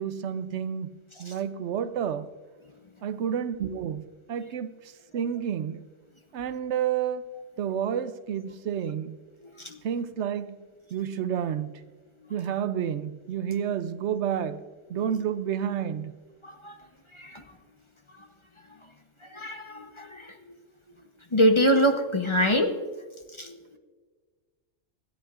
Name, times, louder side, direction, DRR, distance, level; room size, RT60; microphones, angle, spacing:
voice 1, 0.0-2.3 3.0-4.0 4.3-5.8 6.3-9.2 9.8-10.6 10.9-11.7 12.3-16.2, right 8 dB, 75° right, 0.9 m, -30 dB
voice 2, 9.4-9.8 12.2-12.3 14.9-15.1 16.4-16.8 17.1-17.4 18.2-18.3 19.2-20.4 21.3-22.7 23.3-23.8, equal, 25° left, 0.9 m, -25 dB
24.5 x 11.0 x 2.5 m
omnidirectional pair, 1.2 m